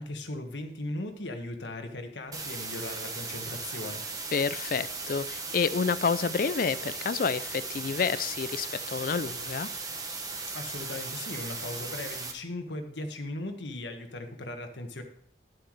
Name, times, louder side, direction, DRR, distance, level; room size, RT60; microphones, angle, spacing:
voice 1, 0.0-4.0 10.5-15.0, left 1 dB, 85° left, 5 dB, 1.5 m, -38 dB
sound 1, 2.3-12.3, right 4 dB, 20° right, 1.1 m, -37 dB
voice 2, 4.3-9.7, left 5 dB, 50° left, 16 dB, 0.4 m, -29 dB
12.0 x 7.8 x 3.2 m, 0.67 s
head